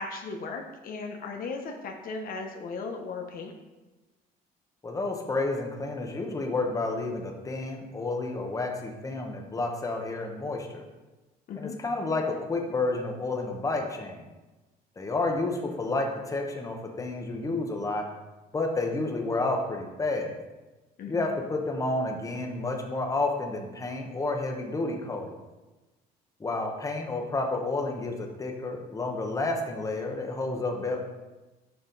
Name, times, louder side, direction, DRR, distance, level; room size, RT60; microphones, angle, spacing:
voice 1, 0.0-3.5 11.5-11.7 21.0-21.3, left 4 dB, 55° left, 3 dB, 0.9 m, -36 dB
voice 2, 4.8-10.9 11.5-14.3 15.0-18.0 18.5-20.4 21.1-25.3 26.4-31.0, left 2 dB, 20° left, 2 dB, 1.0 m, -30 dB
6.8 x 5.5 x 4.0 m, 1.1 s
cardioid pair, 110°, 17 cm